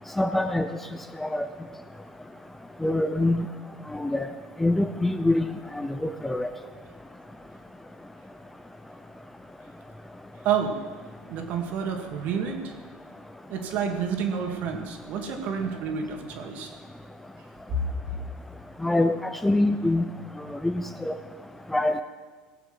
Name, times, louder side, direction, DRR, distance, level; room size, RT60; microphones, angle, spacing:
voice 1, 0.2-0.6 1.2-1.5 2.8-3.5 3.9-4.3 4.6-5.4 6.0-6.5 18.8-19.1 19.4-20.0 20.6-21.1 21.7-22.0, left 1 dB, 5° left, 8 dB, 0.7 m, -24 dB
voice 2, 10.4-10.8 11.3-12.7 13.5-16.7 17.7-17.8, right 6 dB, 55° right, 3 dB, 2.4 m, -29 dB
18.0 x 7.1 x 7.9 m, 1.4 s
supercardioid pair, 110°, 3 cm